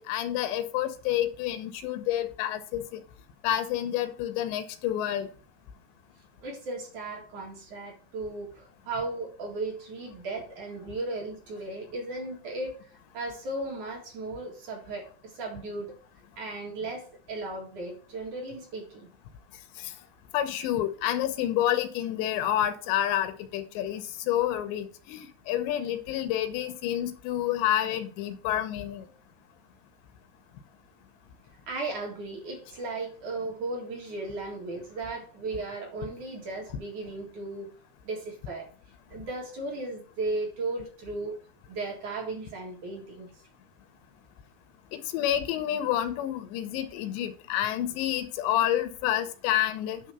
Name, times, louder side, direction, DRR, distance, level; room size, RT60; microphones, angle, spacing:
voice 1, 0.0-3.0 3.4-5.3 19.8-19.9 20.3-29.0 44.9-50.0, left 12 dB, 85° left, 3.1 m, -29 dB
voice 2, 6.4-12.8 13.1-15.9 16.4-19.1 31.7-37.7 38.0-38.7 39.1-41.4 41.7-43.3, right 2 dB, 50° right, 3.0 m, -36 dB
9.8 x 3.5 x 6.7 m
omnidirectional pair, 4.9 m